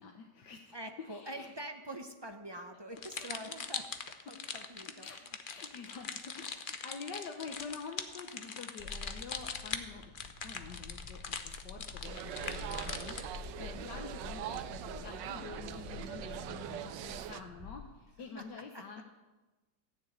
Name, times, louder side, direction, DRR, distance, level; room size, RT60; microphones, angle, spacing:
voice 1, 0.0-0.8 1.1-1.5 3.1-3.4 4.8-5.2 5.5-19.0, left 5 dB, 75° left, 2 dB, 1.7 m, -48 dB
voice 2, 0.7-5.3 18.4-18.8, right 1 dB, 35° right, 5 dB, 0.4 m, -45 dB
sound 1, 3.0-13.4, left 5 dB, 45° left, 0.7 m, -41 dB
sound 2, 8.8-18.2, left 3 dB, 15° right, 4.7 m, -48 dB
sound 3, 12.0-17.4, right 11 dB, 85° right, 1.4 m, -42 dB
15.0 x 7.0 x 9.2 m, 1.2 s
omnidirectional pair, 1.9 m